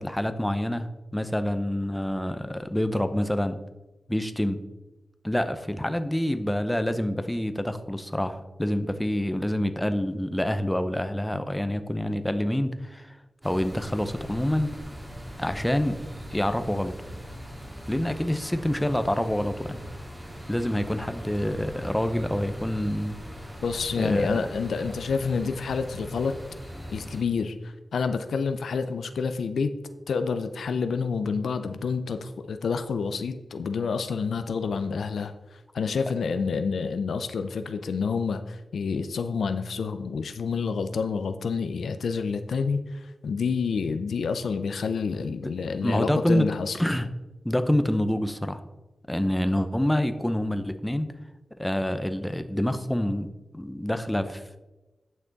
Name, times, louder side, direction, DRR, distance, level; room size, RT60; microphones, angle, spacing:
voice 1, 0.0-3.6 4.1-4.6 5.2-13.2 13.4-14.7 15.4-16.0 16.3-16.9 17.9-19.8 20.5-23.2 24.0-24.4 45.3-45.5 45.8-46.5 46.8-47.1 47.4-48.6 49.1-51.1 51.6-53.3 53.5-54.6, left 1 dB, 10° left, 9 dB, 0.7 m, -27 dB
sound 1, 13.4-27.2, equal, 15° right, 1.8 m, -40 dB
voice 2, 23.6-26.4 26.9-29.7 30.1-35.3 35.7-46.8, left 5 dB, 90° left, 9 dB, 0.5 m, -28 dB
9.3 x 5.9 x 4.0 m, 1.1 s
cardioid pair, 65°, 0 cm